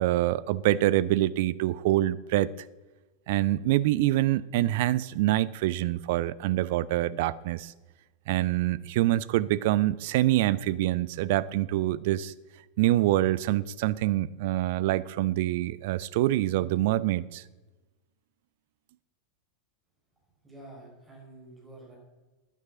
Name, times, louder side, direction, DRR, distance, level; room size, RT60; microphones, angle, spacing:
voice 1, 0.0-2.5 3.3-7.7 8.3-12.3 12.8-17.4, right 15 dB, 50° right, 0.5 m, -25 dB
voice 2, 20.4-22.0, right 2 dB, 15° right, 5.1 m, -48 dB
11.0 x 9.7 x 8.3 m
figure-of-eight pair, 90°, 0 cm